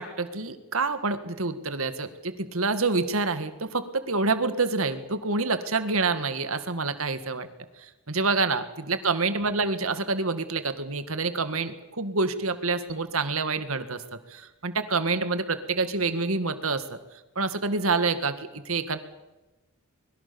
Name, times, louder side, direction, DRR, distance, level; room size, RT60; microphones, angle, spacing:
voice 1, 0.0-7.5 7.8-14.0 14.3-17.0 17.4-19.0, right 3 dB, 75° right, 10 dB, 2.0 m, -27 dB
24.0 x 22.0 x 7.1 m, 1.1 s
head